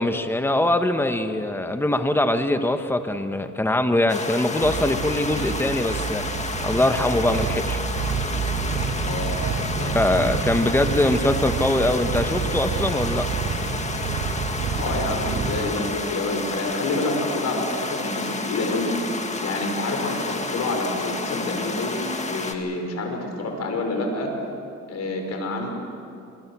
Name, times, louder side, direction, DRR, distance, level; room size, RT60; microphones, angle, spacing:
voice 1, 0.0-6.2 6.6-7.8 9.9-13.3, left 1 dB, 5° left, 7 dB, 1.5 m, -22 dB
sound 1, 4.1-22.5, left 3 dB, 25° left, 1.9 m, -30 dB
sound 2, 4.6-15.6, right 6 dB, 70° right, 2.3 m, -29 dB
voice 2, 9.0-9.4 9.7-10.2 14.7-24.3 24.9-25.7, left 2 dB, 60° left, 2 dB, 5.4 m, -28 dB
25.0 x 23.0 x 6.3 m, 2.6 s
cardioid pair, 90°, 30 cm